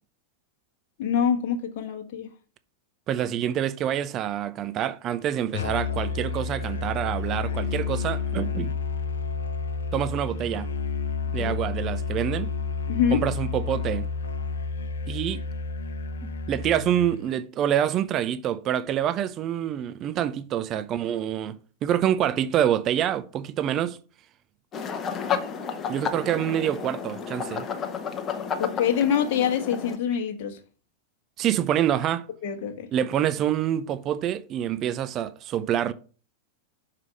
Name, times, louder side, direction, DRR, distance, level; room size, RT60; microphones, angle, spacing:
voice 1, 1.0-2.3 11.4-11.6 12.9-13.2 28.6-30.6 32.4-32.9, left 8 dB, 50° left, 1.1 m, -25 dB
voice 2, 3.1-8.8 9.9-10.7 11.3-12.5 13.1-14.1 15.1-15.4 16.2-24.0 25.9-27.7 31.4-32.3 32.9-35.9, right 10 dB, 35° right, 0.5 m, -26 dB
Musical instrument, 5.5-17.2, left 4 dB, 65° left, 0.7 m, -30 dB
sound 1, 24.7-30.0, left 7 dB, 25° left, 0.8 m, -31 dB
5.8 x 4.7 x 5.1 m
figure-of-eight pair, 90°, 0 cm